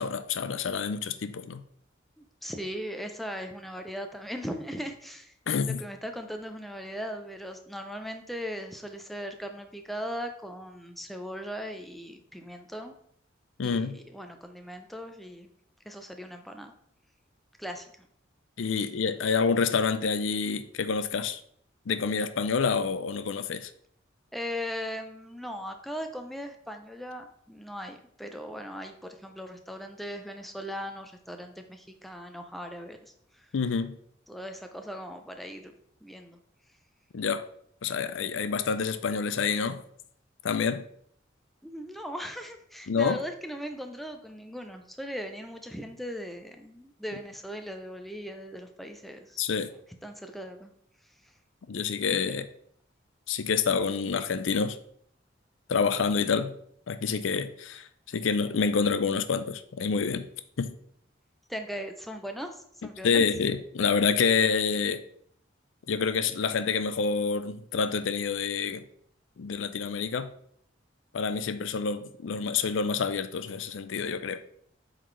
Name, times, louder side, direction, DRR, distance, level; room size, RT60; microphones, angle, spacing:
voice 1, 0.0-1.6 5.5-5.8 13.6-14.0 18.6-21.4 21.9-23.7 33.5-34.0 37.1-37.5 37.8-39.8 40.4-40.8 42.9-43.2 49.4-49.7 51.7-52.5 53.3-54.8 55.7-56.5 56.9-60.3 60.6-60.8 63.0-65.0 65.9-68.8 69.4-70.3 71.1-74.4, left 5 dB, 80° left, 0.5 m, -27 dB
voice 2, 2.2-5.3 5.6-12.9 13.6-15.5 15.8-16.7 17.6-18.1 24.3-28.9 29.2-33.0 33.4-33.5 34.3-35.7 36.0-36.4 41.6-49.4 50.0-50.7 52.3-52.4 61.5-63.2, equal, ahead, 0.5 m, -38 dB
7.7 x 4.0 x 3.2 m
head